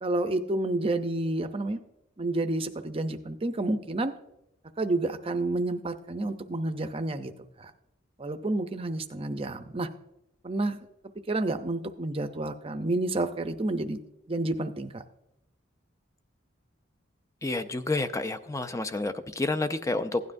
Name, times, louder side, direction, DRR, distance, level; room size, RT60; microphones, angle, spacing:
voice 1, 0.0-1.8 2.2-4.1 4.8-7.3 7.6-7.7 8.2-9.9 10.4-10.8 11.3-14.0 14.3-15.0, right 2 dB, 30° right, 8 dB, 0.6 m, -29 dB
voice 2, 17.4-20.2, left 2 dB, 15° left, 10 dB, 0.5 m, -29 dB
16.0 x 9.7 x 2.6 m, 0.85 s
head